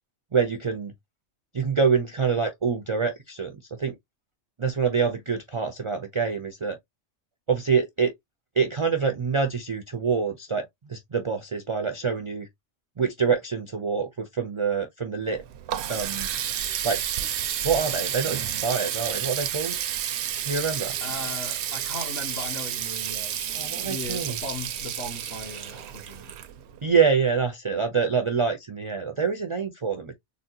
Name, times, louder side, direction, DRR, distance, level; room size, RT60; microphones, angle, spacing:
voice 1, 0.3-0.9 1.5-4.0 4.6-6.8 7.5-8.1 8.6-12.5 13.0-15.4 15.9-16.3 16.8-17.0 17.6-19.8 20.5-21.0 23.5-24.4 26.8-30.2, right 5 dB, 45° right, 0.4 m, -26 dB
Water tap faucet, 15.2-26.9, right 10 dB, 70° right, 0.8 m, -31 dB
voice 2, 21.0-26.3, left 2 dB, 55° left, 1.5 m, -37 dB
4.0 x 2.2 x 2.7 m
omnidirectional pair, 1.2 m